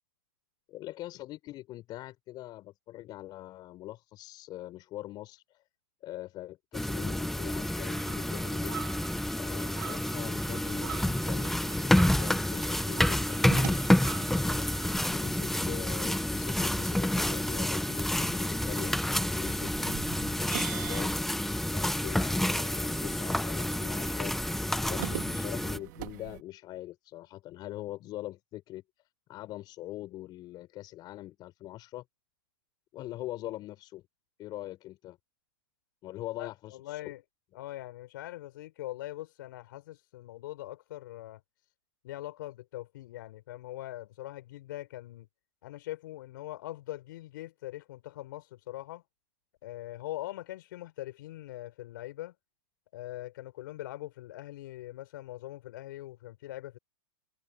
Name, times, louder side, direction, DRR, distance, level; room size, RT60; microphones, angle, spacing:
voice 1, 0.7-5.6 6.0-8.9 9.4-13.8 14.1-14.7 15.1-20.0 20.4-21.1 21.4-24.3 24.8-28.8 29.3-32.0 32.9-34.0 34.4-35.2 36.0-37.0, left 15 dB, 35° left, 4.5 m, -43 dB
sound 1, 6.7-25.8, left 1 dB, ahead, 0.6 m, -29 dB
sound 2, 7.9-14.9, right 9 dB, 80° right, 1.3 m, -45 dB
sound 3, 11.8-26.4, right 21 dB, 55° right, 2.6 m, -46 dB
voice 2, 36.4-37.2 37.5-41.4 42.0-45.3 45.6-49.0 49.6-52.3 52.9-56.8, left 15 dB, 65° left, 4.1 m, -42 dB
hypercardioid pair, 115°, 12 cm